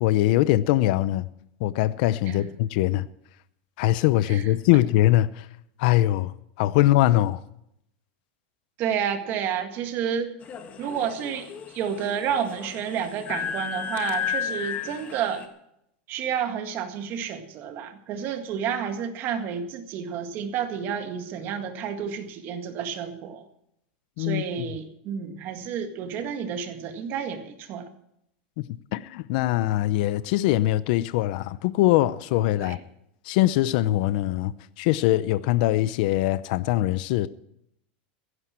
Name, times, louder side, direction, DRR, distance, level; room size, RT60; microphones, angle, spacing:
voice 1, 0.0-1.3 1.6-3.1 3.8-5.5 5.8-7.4 24.2-24.7 28.6-32.8 33.2-37.3, left 15 dB, 55° left, 0.7 m, -22 dB
voice 2, 8.8-10.3 10.8-15.4 16.1-23.4 24.2-27.9 32.6-32.8, right 8 dB, 35° right, 1.9 m, -30 dB
sound 1, 10.4-15.5, left 8 dB, 25° left, 1.7 m, -33 dB
16.5 x 15.0 x 4.5 m
supercardioid pair, 160°, 6 cm